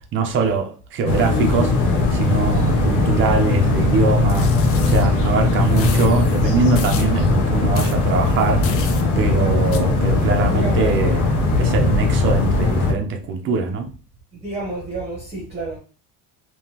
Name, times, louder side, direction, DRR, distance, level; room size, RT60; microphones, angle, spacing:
voice 1, 0.1-1.8 2.1-8.9 9.2-11.3 11.6-13.9, right 4 dB, 40° right, 0.7 m, -22 dB
sound 1, 1.0-12.9, left 3 dB, 90° left, 1.1 m, -19 dB
sound 2, 4.3-5.0 5.8-6.1 6.8-7.1 7.7-8.0 8.6-9.0 9.7-9.8, left 7 dB, 45° left, 0.5 m, -33 dB
voice 2, 9.3-9.7 10.5-10.9 14.3-15.8, right 2 dB, 20° right, 1.0 m, -29 dB
3.6 x 3.0 x 2.9 m
cardioid pair, 180°, 31 cm